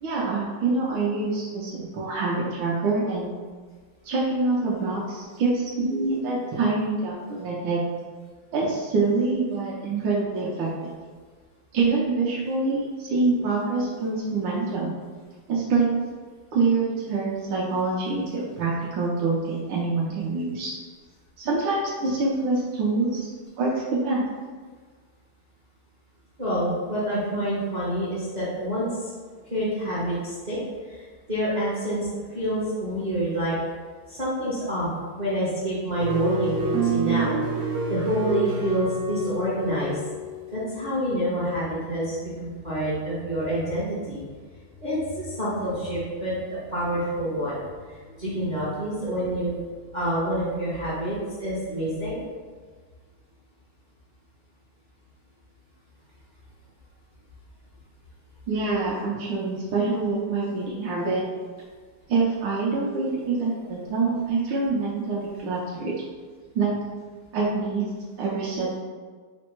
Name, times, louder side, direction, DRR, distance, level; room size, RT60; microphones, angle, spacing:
voice 1, 0.0-3.3 4.0-7.8 8.5-10.9 11.7-14.9 15.5-15.9 16.5-20.7 21.4-23.3 23.6-24.2 58.5-61.2 62.1-65.9 66.5-66.7 67.3-67.8 68.2-68.8, right 3 dB, 70° right, -6 dB, 1.3 m, -25 dB
voice 2, 26.4-28.9 29.5-30.6 30.9-33.5 34.1-34.9 35.2-37.4 37.9-40.0 40.5-44.2 44.8-49.6 49.9-52.2, right 1 dB, 40° right, -9 dB, 0.6 m, -27 dB
sound 1, 36.0-40.6, right 3 dB, 90° right, 0.8 m, -27 dB
4.3 x 2.0 x 4.4 m, 1.5 s
omnidirectional pair, 2.3 m